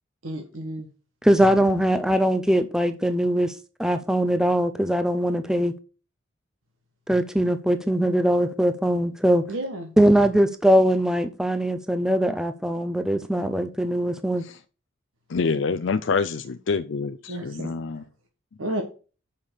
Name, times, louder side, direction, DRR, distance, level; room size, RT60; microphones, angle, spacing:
voice 1, 0.2-0.9 9.5-9.9 17.3-17.7 18.6-18.8, right 1 dB, 90° right, 1.3 m, -31 dB
voice 2, 1.2-5.7 7.1-9.4 10.0-14.4, equal, 5° right, 0.5 m, -21 dB
voice 3, 15.3-18.0, left 4 dB, 70° left, 0.5 m, -26 dB
6.9 x 5.7 x 6.3 m
head